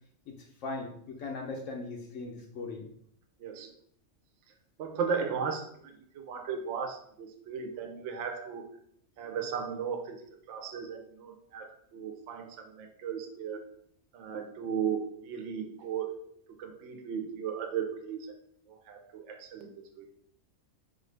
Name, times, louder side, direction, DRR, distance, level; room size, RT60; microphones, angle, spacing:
voice 1, 0.6-2.9, left 3 dB, 85° left, 0 dB, 1.0 m, -38 dB
voice 2, 4.8-8.7 9.2-13.6 14.1-16.1 16.6-18.3 18.9-19.7 20.0-20.1, right 7 dB, 75° right, 5 dB, 0.9 m, -36 dB
4.1 x 2.5 x 3.2 m, 0.66 s
omnidirectional pair, 1.3 m